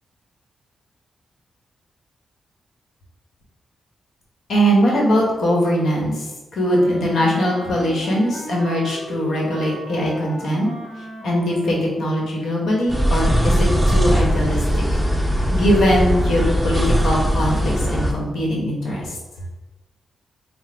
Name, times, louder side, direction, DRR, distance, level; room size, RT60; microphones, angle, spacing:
voice 1, 4.5-10.7 11.2-14.8 15.5-19.2, equal, 75° left, -2 dB, 1.1 m, -21 dB
Wind instrument woodwind instrument, 6.6-11.8, right 1 dB, 20° right, 1.2 m, -36 dB
sound 1, 12.9-18.1, equal, ahead, 0.6 m, -19 dB
4.1 x 2.1 x 4.3 m, 1.1 s
cardioid pair, 85°, 0 cm